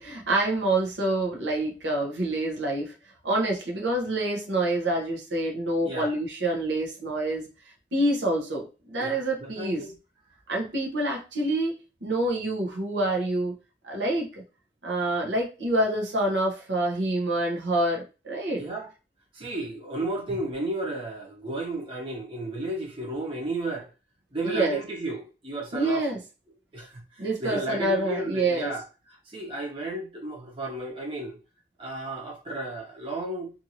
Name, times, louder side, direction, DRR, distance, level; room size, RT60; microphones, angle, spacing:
voice 1, 0.0-2.9 3.2-7.5 7.9-9.8 10.5-13.5 13.8-14.4 14.8-18.6 24.4-24.8 25.7-26.2 27.2-28.7, right 1 dB, 85° right, 0.8 m, -27 dB
voice 2, 9.0-9.9 18.5-18.9 19.3-23.9 24.3-26.0 26.7-31.4 31.8-33.5, right 2 dB, 30° right, 0.9 m, -33 dB
2.6 x 2.6 x 2.8 m
head